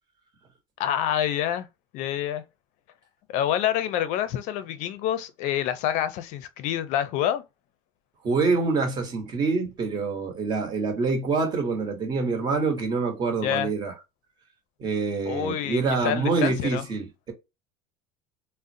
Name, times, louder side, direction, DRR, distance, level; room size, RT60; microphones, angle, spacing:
voice 1, 0.8-1.7 1.9-2.4 3.3-7.4 13.4-13.7 15.3-16.8, left 11 dB, 50° left, 0.5 m, -27 dB
voice 2, 8.2-13.9 14.8-17.3, right 4 dB, 30° right, 1.1 m, -26 dB
3.7 x 2.1 x 2.6 m
cardioid pair, 155°, 16 cm